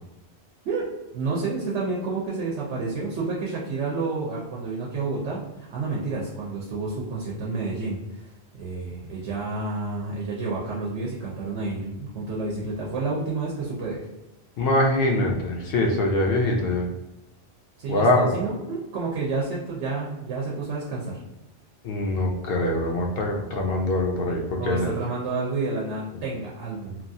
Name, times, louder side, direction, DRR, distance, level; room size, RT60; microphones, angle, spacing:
voice 1, 0.6-14.0 17.8-21.2 24.6-27.0, right 3 dB, 90° right, -4 dB, 0.9 m, -30 dB
voice 2, 14.6-16.9 17.9-18.4 21.8-24.9, left 1 dB, 65° left, 1 dB, 0.7 m, -23 dB
2.9 x 2.3 x 2.6 m, 0.97 s
omnidirectional pair, 1.1 m